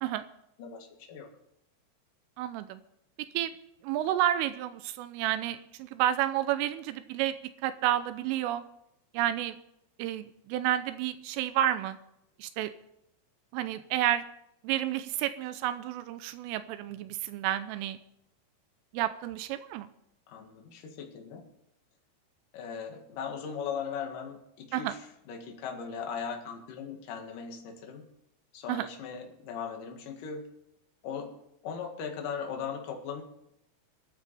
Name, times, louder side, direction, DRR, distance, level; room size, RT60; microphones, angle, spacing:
voice 1, 0.6-1.3 20.3-21.5 22.5-28.1 28.5-30.5 31.0-31.4 31.6-33.2, left 6 dB, 55° left, 3 dB, 2.7 m, -38 dB
voice 2, 2.4-2.8 3.3-3.5 3.8-7.4 7.6-8.6 9.1-9.6 10.0-12.0 12.4-12.7 13.5-14.2 14.6-18.0 18.9-19.9 24.7-24.9 28.7-28.9, right 12 dB, 90° right, 12 dB, 3.3 m, -30 dB
24.5 x 9.1 x 4.2 m, 0.80 s
omnidirectional pair, 5.7 m